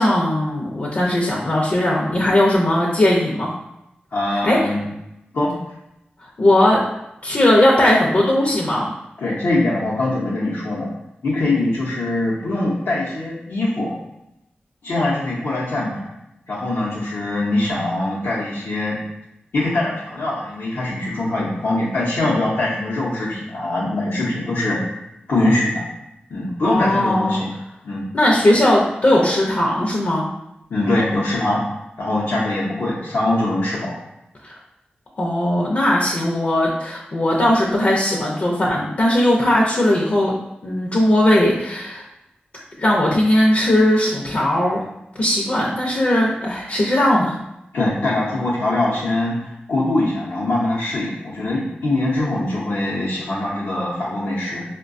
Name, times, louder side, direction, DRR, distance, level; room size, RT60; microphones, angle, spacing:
voice 1, 0.0-3.5 4.3-4.7 6.2-6.8 7.2-8.9 26.6-27.4 28.1-30.3 34.4-34.6 35.2-42.1 42.8-44.8 45.1-47.4, left 1 dB, 55° left, -3 dB, 0.6 m, -18 dB
voice 2, 4.1-4.8 5.3-5.5 9.2-10.9 11.2-13.9 14.8-16.1 16.5-19.0 19.5-24.8 25.3-25.9 26.3-27.5 27.8-28.0 30.7-31.6 32.0-34.0 47.7-54.6, left 2 dB, 90° left, -8 dB, 0.7 m, -22 dB
4.5 x 2.2 x 2.5 m, 0.86 s
wide cardioid pair, 65°, 4 cm